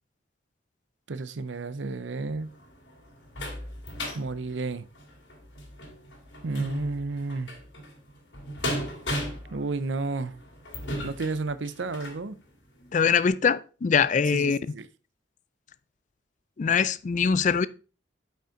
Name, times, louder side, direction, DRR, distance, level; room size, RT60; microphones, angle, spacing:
voice 1, 1.1-2.5 4.1-4.9 6.4-7.5 9.5-10.3 11.0-12.4 14.3-14.9, right 3 dB, 80° right, 0.6 m, -31 dB
sound 1, 2.4-12.2 12.8-12.9 13.3-13.4, equal, 75° left, 2.3 m, -36 dB
voice 2, 12.9-14.6 16.6-17.7, left 6 dB, 40° left, 0.4 m, -23 dB
8.7 x 5.5 x 3.7 m
head